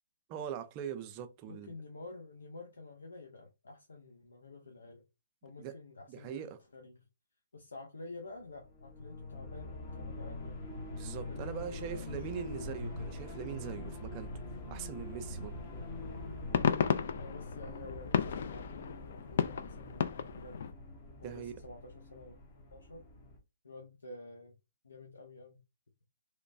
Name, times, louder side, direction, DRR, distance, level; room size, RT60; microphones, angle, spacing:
voice 1, 0.3-1.7 5.6-5.8 6.1-6.6 11.0-14.3 14.7-15.6 21.2-21.5, right 9 dB, 30° right, 0.4 m, -42 dB
voice 2, 1.5-5.0 5.4-7.1 7.5-10.7 11.3-12.6 17.2-20.6 21.2-22.4 22.7-23.1 23.6-24.5 24.8-25.6, left 3 dB, 85° left, 0.7 m, -49 dB
sound 1, 8.4-23.4, left 2 dB, 35° left, 0.8 m, -44 dB
sound 2, 15.5-15.6 16.1-20.7, left 7 dB, 55° left, 0.3 m, -33 dB
3.0 x 2.2 x 2.6 m
hypercardioid pair, 145°, 0 cm